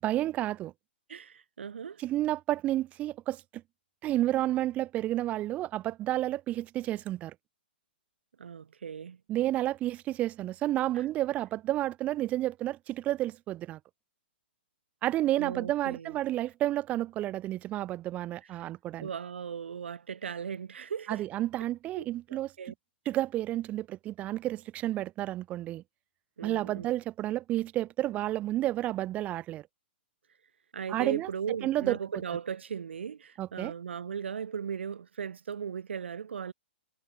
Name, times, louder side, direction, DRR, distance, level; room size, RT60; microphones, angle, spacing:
voice 1, 0.0-0.7 2.0-3.6 4.0-7.3 9.3-13.8 15.0-19.1 21.1-22.5 23.0-25.8 26.4-29.7 30.9-31.3 31.6-32.0 33.4-33.7, right 14 dB, 25° right, 2.6 m, -31 dB
voice 2, 1.1-2.0 8.4-9.2 10.9-11.0 15.4-16.1 19.0-21.2 22.0-22.7 26.4-26.9 30.7-36.5, right 7 dB, 80° right, 4.9 m, -37 dB
hypercardioid pair, 145°, 6 cm